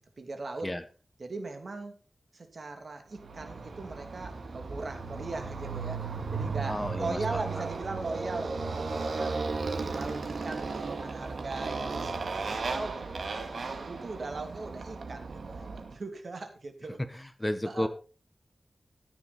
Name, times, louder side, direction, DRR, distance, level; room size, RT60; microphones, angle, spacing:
voice 1, 0.2-0.7 1.2-1.9 2.3-9.6 9.9-13.3 13.6-17.3 17.7-17.9, right 3 dB, 60° right, 5 dB, 2.7 m, -39 dB
Motorcycle, 3.2-15.9, right 4 dB, 85° right, 2.0 m, -35 dB
voice 2, 6.6-7.4 17.0-17.9, left 1 dB, 15° left, 10 dB, 1.1 m, -32 dB
14.0 x 9.9 x 4.2 m, 0.37 s
wide cardioid pair, 110°, 0 cm